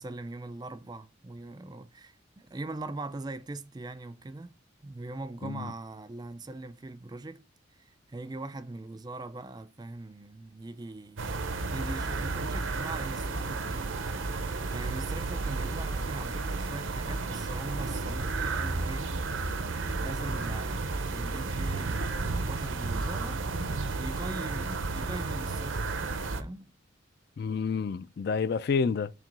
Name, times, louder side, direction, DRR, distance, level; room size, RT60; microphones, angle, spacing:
voice 1, 0.0-4.5 4.8-7.4 7.8-14.0 14.7-19.2 20.0-23.4 24.0-26.7, right 2 dB, 20° right, 0.4 m, -41 dB
sound 1, 11.2-26.4, right 3 dB, 85° right, 0.8 m, -32 dB
voice 2, 27.4-29.1, left 5 dB, 55° left, 0.3 m, -29 dB
7.4 x 2.9 x 5.3 m
head